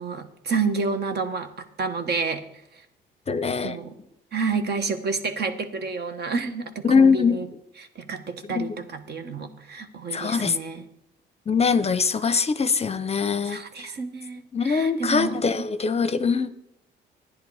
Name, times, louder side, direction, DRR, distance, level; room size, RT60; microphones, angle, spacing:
voice 1, 0.0-1.5 1.8-2.4 3.6-3.9 4.3-7.5 7.9-10.8 13.5-15.3, right 4 dB, 55° right, 8 dB, 1.3 m, -29 dB
voice 2, 3.3-3.8 6.8-7.4 8.4-8.7 10.1-10.6 11.5-13.6 14.5-16.5, left 5 dB, 30° left, 13 dB, 0.6 m, -22 dB
11.5 x 9.8 x 4.8 m, 0.81 s
cardioid pair, 90°, 20 cm